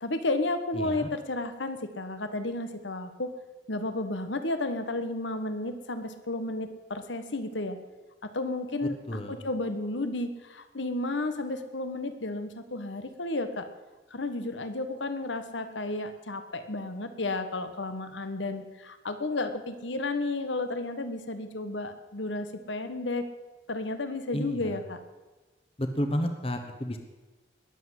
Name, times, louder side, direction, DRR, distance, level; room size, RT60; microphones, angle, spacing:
voice 1, 0.0-3.3 3.7-7.8 8.2-9.0 9.3-13.7 14.1-23.3 23.7-25.0, left 2 dB, 80° left, 10 dB, 1.4 m, -32 dB
voice 2, 0.7-1.1 9.1-9.4 24.3-24.8 25.8-27.0, equal, 30° left, 6 dB, 1.2 m, -31 dB
20.5 x 7.8 x 8.1 m, 1.2 s
head